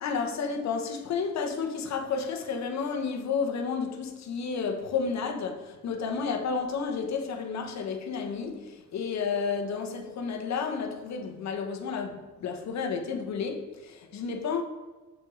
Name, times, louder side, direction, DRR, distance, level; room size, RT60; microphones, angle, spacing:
voice 1, 0.0-14.6, left 5 dB, 65° left, 1.1 m, -31 dB
6.4 x 4.9 x 3.9 m
cardioid pair, 90°, 30 cm